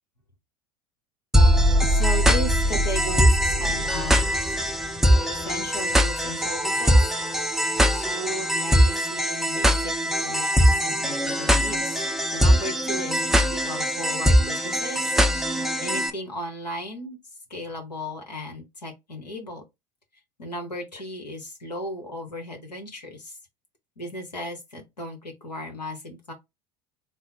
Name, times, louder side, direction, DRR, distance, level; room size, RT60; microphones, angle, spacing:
sound 1, 1.3-16.1, equal, ahead, 0.4 m, -21 dB
voice 1, 1.9-4.3 5.1-7.1 8.0-12.0 12.3-15.2 15.8-17.2 17.5-19.6 20.4-23.4 24.0-26.3, left 1 dB, 85° left, 1.2 m, -35 dB
3.5 x 2.0 x 4.2 m
figure-of-eight pair, 75°, 21 cm